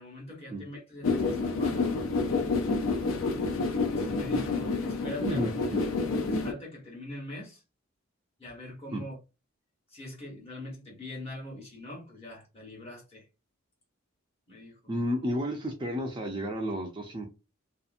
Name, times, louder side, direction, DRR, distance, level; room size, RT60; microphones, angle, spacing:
voice 1, 0.0-2.0 3.7-5.5 6.3-7.6 8.4-9.2 9.9-13.2 14.5-14.8, left 1 dB, 30° left, 1.1 m, -43 dB
sound 1, 1.0-6.5, left 3 dB, 80° left, 0.5 m, -28 dB
voice 2, 5.2-5.8 8.9-9.0 14.9-17.3, equal, 25° right, 0.4 m, -32 dB
2.8 x 2.4 x 2.5 m
head